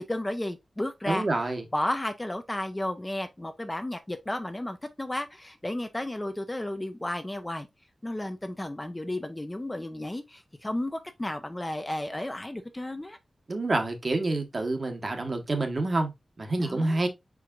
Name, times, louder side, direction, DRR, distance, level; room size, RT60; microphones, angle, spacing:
voice 1, 0.0-1.3 1.7-7.7 8.0-13.2 16.6-17.0, left 1 dB, 15° left, 0.6 m, -33 dB
voice 2, 1.1-1.6 13.5-16.1 16.4-17.1, right 2 dB, 45° right, 1.1 m, -27 dB
4.8 x 4.7 x 2.4 m
wide cardioid pair, 125°, 0 cm